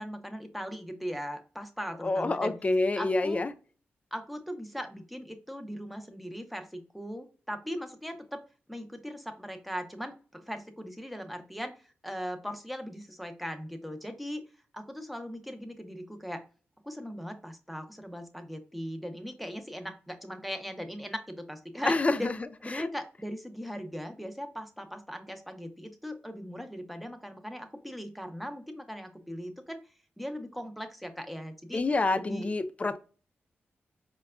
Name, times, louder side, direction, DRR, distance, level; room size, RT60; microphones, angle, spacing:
voice 1, 0.0-2.5 3.0-3.4 4.1-8.4 8.7-14.4 14.7-16.4 16.8-22.3 22.6-29.8 30.2-31.8 32.1-32.5, equal, ahead, 0.7 m, -39 dB
voice 2, 2.0-3.5 21.9-22.3 22.7-22.9 31.7-33.0, left 2 dB, 30° left, 0.4 m, -27 dB
4.6 x 2.2 x 2.3 m
cardioid pair, 55°, 4 cm